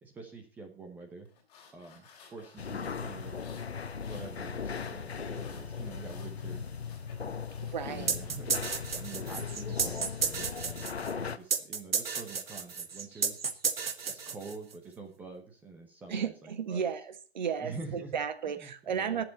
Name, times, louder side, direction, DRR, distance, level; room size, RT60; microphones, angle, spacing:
voice 1, 0.0-1.3 1.7-3.4 4.0-6.7 7.9-8.6 8.9-10.8 11.1-13.4 14.0-16.8 17.6-18.2 18.6-19.2, right 3 dB, 5° right, 3 dB, 0.9 m, -46 dB
sound 1, 1.3-9.2, left 5 dB, 15° left, 3.4 m, -55 dB
sound 2, 2.6-11.4, left 6 dB, 75° left, 1.1 m, -38 dB
voice 2, 7.6-8.2 16.1-19.2, right 7 dB, 45° right, 11 dB, 1.5 m, -34 dB
sound 3, 8.1-14.8, right 5 dB, 65° right, 1.4 m, -32 dB
19.0 x 7.3 x 4.1 m, 0.37 s
figure-of-eight pair, 145°, 32 cm